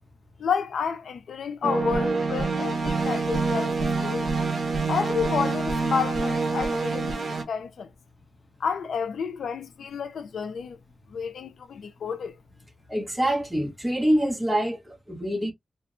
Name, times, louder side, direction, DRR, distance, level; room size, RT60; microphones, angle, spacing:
voice 1, 0.4-4.4 4.9-7.9 8.6-10.8 11.1-12.4, left 6 dB, 85° left, 0.4 m, -30 dB
sound 1, 1.6-7.4, right 3 dB, 55° right, 0.9 m, -26 dB
voice 2, 12.9-15.5, equal, 10° right, 0.9 m, -25 dB
4.2 x 2.1 x 2.4 m
wide cardioid pair, 105°, 0 cm